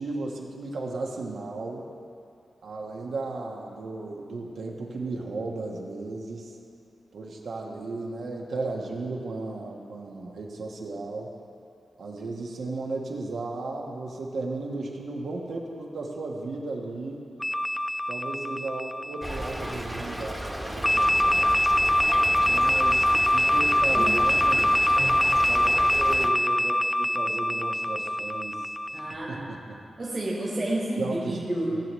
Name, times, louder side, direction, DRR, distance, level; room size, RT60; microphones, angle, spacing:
voice 1, 0.0-1.9 2.6-6.6 7.1-11.3 12.0-17.3 18.1-21.5 22.5-24.7 25.5-28.7 29.3-29.8 31.0-31.4 31.7-31.8, right 3 dB, 80° right, -1 dB, 1.3 m, -35 dB
sound 1, 17.4-19.9 20.8-29.1, left 1 dB, 5° left, 0.3 m, -24 dB
Stream / Trickle dribble, 19.2-26.3, equal, 10° right, 1.1 m, -34 dB
voice 2, 25.0-25.4 28.9-29.5 30.0-31.8, right 1 dB, 45° right, -5 dB, 1.7 m, -30 dB
16.0 x 7.5 x 3.1 m, 2.5 s
cardioid pair, 60°, 0 cm